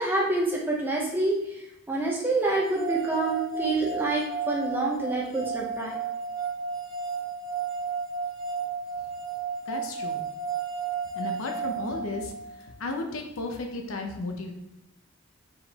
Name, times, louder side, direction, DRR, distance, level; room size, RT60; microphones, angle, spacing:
voice 1, 0.0-6.0, right 2 dB, 10° right, -3 dB, 0.7 m, -27 dB
sound 1, 2.4-12.6, right 6 dB, 10° left, 1.0 m, -33 dB
voice 2, 9.7-10.2 11.1-12.3 12.8-14.5, left 2 dB, 75° left, 3 dB, 0.7 m, -34 dB
4.5 x 3.7 x 2.9 m, 0.89 s
head